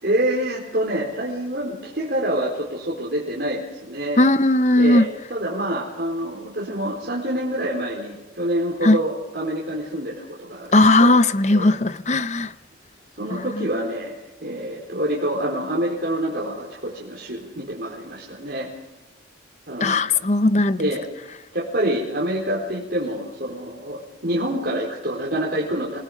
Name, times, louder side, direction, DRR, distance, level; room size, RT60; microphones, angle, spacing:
voice 1, 0.0-4.2 4.8-11.2 11.5-11.7 13.2-18.7 19.7-20.1 20.8-21.1 21.5-26.0, right 1 dB, 60° right, -4 dB, 4.5 m, -27 dB
voice 2, 4.2-5.1 8.8-9.0 10.7-12.5 13.3-13.7 19.8-20.9, left 2 dB, 35° left, 12 dB, 0.7 m, -17 dB
28.0 x 19.5 x 5.1 m, 1.1 s
head